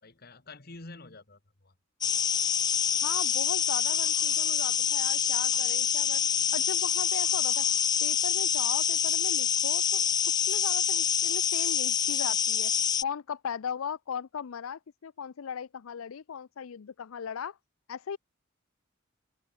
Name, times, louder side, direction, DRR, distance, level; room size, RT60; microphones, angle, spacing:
voice 1, 0.0-1.7, left 2 dB, 50° left, 1.9 m, -48 dB
sound 1, 2.0-13.0, left 8 dB, 20° left, 0.3 m, -26 dB
voice 2, 3.0-6.2 6.5-7.7 8.0-10.1 10.5-12.7 13.0-17.6 17.9-18.2, left 7 dB, 90° left, 0.5 m, -38 dB
head